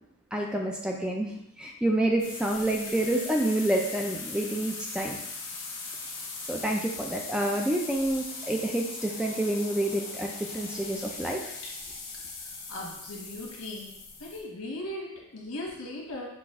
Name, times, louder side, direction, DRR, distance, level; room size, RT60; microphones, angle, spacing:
voice 1, 0.3-5.2 6.5-11.5, right 1 dB, 5° right, 0 dB, 0.4 m, -28 dB
sound 1, 2.2-14.4, left 4 dB, 60° left, 1.1 m, -40 dB
voice 2, 12.4-13.9 14.2-16.3, left 1 dB, 85° left, -1 dB, 1.3 m, -38 dB
6.0 x 2.4 x 3.6 m, 0.82 s
head